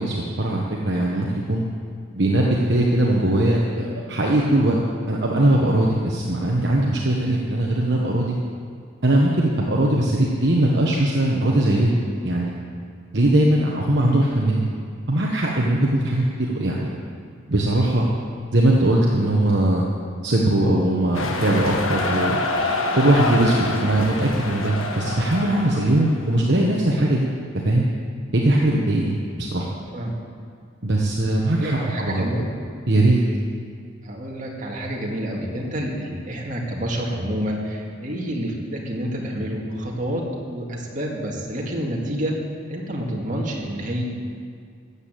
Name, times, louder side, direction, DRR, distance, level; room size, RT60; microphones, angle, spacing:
voice 1, 0.0-1.6 2.1-4.8 5.1-8.4 9.0-12.5 13.1-14.7 15.1-16.9 17.5-18.1 18.5-19.8 20.2-22.4 22.9-27.3 27.6-27.9 28.3-29.2 29.5-29.7 30.8-32.3 32.9-33.2, right 1 dB, 55° right, -2 dB, 1.2 m, -20 dB
sound 1, 21.1-26.3, left 2 dB, 85° left, 1.5 m, -26 dB
voice 2, 29.5-30.1 31.6-32.5 34.0-42.3 42.7-44.0, equal, 40° right, -1 dB, 2.1 m, -28 dB
13.5 x 8.5 x 7.6 m, 2.2 s
head